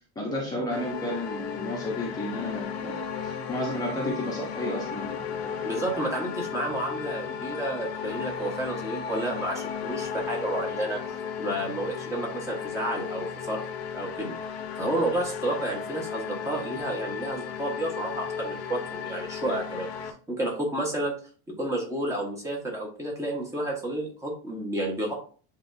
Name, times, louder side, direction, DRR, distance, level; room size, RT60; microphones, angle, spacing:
voice 1, 0.1-2.9 3.2-5.5 7.3-7.4, left 1 dB, 10° left, -3 dB, 1.4 m, -32 dB
sound 1, 0.7-20.1, left 7 dB, 90° left, 1.4 m, -35 dB
voice 2, 5.6-13.7 13.9-14.3 14.8-21.2 21.5-25.1, right 1 dB, 10° right, -1 dB, 1.7 m, -31 dB
10.0 x 3.7 x 2.8 m, 0.40 s
supercardioid pair, 165°, 31 cm